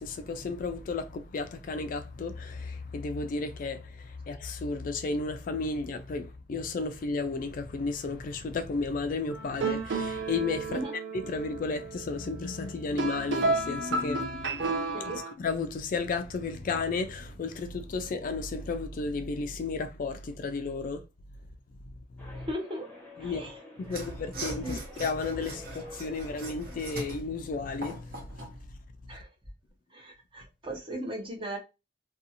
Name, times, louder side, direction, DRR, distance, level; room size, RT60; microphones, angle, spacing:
voice 1, 0.0-10.8 11.2-21.0 22.3-22.5 23.2-23.5 23.8-28.0, left 4 dB, 45° left, 0.3 m, -33 dB
sound 1, 9.3-15.3, right 3 dB, 70° right, 0.5 m, -32 dB
sound 2, 22.2-27.2, left 1 dB, 10° left, 0.7 m, -50 dB
voice 2, 22.5-22.9 23.2-23.6 23.9-24.0 24.6-24.8 29.1-29.3 29.9-31.6, equal, 30° right, 0.7 m, -37 dB
Mechanisms / Sawing, 23.8-28.6, right 1 dB, 55° right, 0.9 m, -41 dB
2.5 x 2.3 x 2.7 m
head